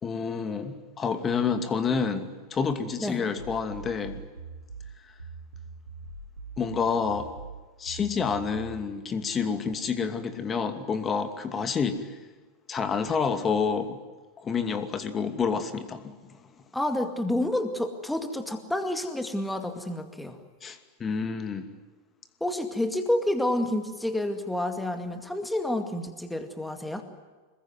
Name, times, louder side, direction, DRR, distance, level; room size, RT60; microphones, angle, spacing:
voice 1, 0.0-4.2 6.6-7.3 7.8-12.2 12.7-14.0 14.4-16.3 20.6-21.7, left 5 dB, 20° left, 9 dB, 2.5 m, -29 dB
sound 1, 3.4-8.8, right 4 dB, 80° right, 3.5 m, -43 dB
voice 2, 16.7-20.4 22.4-27.0, left 1 dB, 5° left, 6 dB, 2.2 m, -29 dB
26.5 x 21.5 x 9.5 m, 1.3 s
figure-of-eight pair, 90°, 0 cm